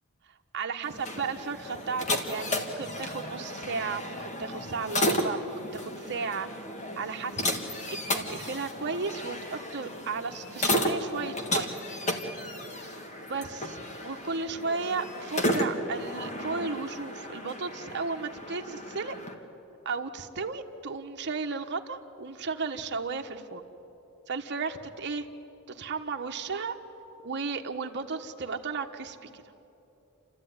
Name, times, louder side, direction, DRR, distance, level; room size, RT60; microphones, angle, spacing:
voice 1, 0.5-6.5 6.9-11.7 13.3-19.2 19.8-23.6 24.3-25.3 25.7-26.8 27.2-29.4, right 4 dB, 55° right, 5 dB, 1.2 m, -34 dB
sound 1, 0.8-19.3, left 1 dB, 35° left, 1.8 m, -33 dB
29.5 x 13.5 x 9.6 m, 3.0 s
head